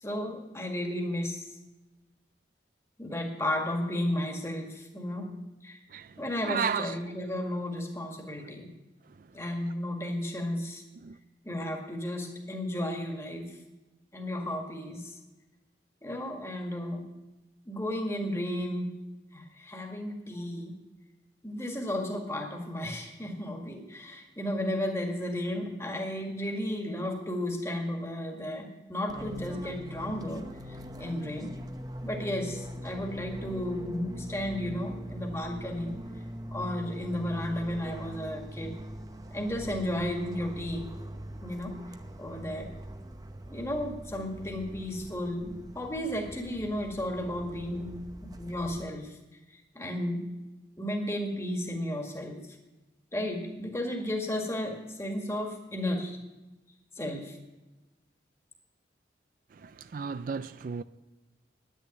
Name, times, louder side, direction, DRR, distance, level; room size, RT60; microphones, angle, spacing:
voice 1, 0.0-1.5 3.0-5.3 5.6-5.8 6.2-8.7 9.3-10.8 11.5-13.5 14.1-15.1 16.0-17.1 17.7-19.0 19.3-20.8 21.4-31.5 32.0-36.0 36.5-38.7 39.3-40.9 41.4-41.7 42.2-42.7 43.5-49.1 49.8-50.3 50.8-52.4 53.1-56.2 57.0-57.4, left 1 dB, 15° left, 1.8 m, -33 dB
voice 2, 6.4-6.9 11.0-11.1 59.6-60.8, right 6 dB, 50° right, 0.4 m, -33 dB
Fixed-wing aircraft airplane, 29.1-48.8, right 1 dB, 20° right, 0.7 m, -42 dB
10.0 x 10.0 x 9.6 m
head